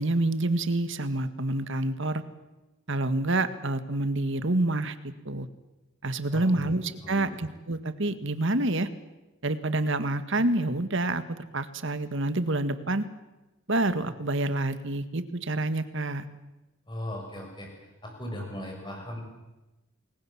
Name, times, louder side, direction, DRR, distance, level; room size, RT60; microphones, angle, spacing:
voice 1, 0.0-2.2 2.9-5.5 6.0-8.9 9.4-13.1 13.7-16.2, right 2 dB, 60° right, 11 dB, 1.8 m, -28 dB
voice 2, 6.3-6.7 7.0-7.4 16.9-17.7 18.0-19.2, left 1 dB, 20° left, 1 dB, 6.7 m, -38 dB
28.5 x 21.0 x 7.4 m, 1.0 s
head